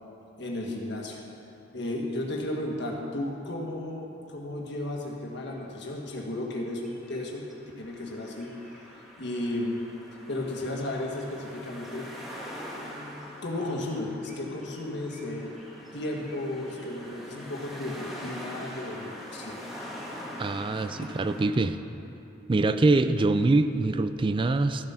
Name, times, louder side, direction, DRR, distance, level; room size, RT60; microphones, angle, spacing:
voice 1, 0.4-1.2 1.7-7.4 7.8-8.5 9.2-9.8 10.3-12.1 13.4-15.5 15.9-19.6, left 1 dB, 65° left, 0 dB, 1.7 m, -34 dB
sound 1, 4.8-21.4, equal, ahead, 1.7 m, -43 dB
voice 2, 20.4-21.8 22.5-24.9, right 2 dB, 25° right, 10 dB, 0.4 m, -24 dB
14.0 x 7.4 x 5.7 m, 3.0 s
head